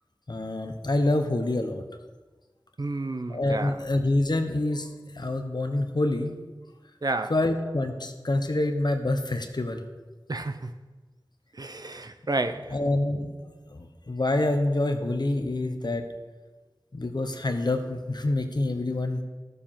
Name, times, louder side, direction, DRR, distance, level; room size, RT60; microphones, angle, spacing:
voice 1, 0.3-1.8 3.3-4.9 5.1-6.4 7.3-9.8 12.7-13.3 13.7-16.0 16.9-19.2, left 2 dB, 55° left, 1.0 m, -26 dB
voice 2, 2.8-3.8 7.0-7.3 10.3-10.7 11.5-12.8, right 2 dB, 50° right, 0.6 m, -31 dB
14.5 x 6.9 x 3.7 m
wide cardioid pair, 50°, 8 cm